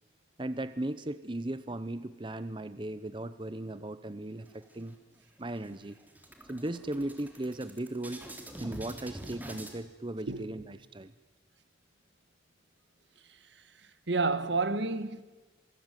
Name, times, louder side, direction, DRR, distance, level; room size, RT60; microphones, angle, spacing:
voice 1, 0.4-4.9 5.4-6.0 6.5-8.2 8.6-11.1, right 1 dB, 25° right, 0.8 m, -37 dB
sound 1, 4.4-5.2 5.6-5.7 6.0-9.8, right 1 dB, 10° right, 3.6 m, -45 dB
voice 2, 14.1-15.2, right 3 dB, 70° right, 1.6 m, -29 dB
28.0 x 22.0 x 9.2 m
head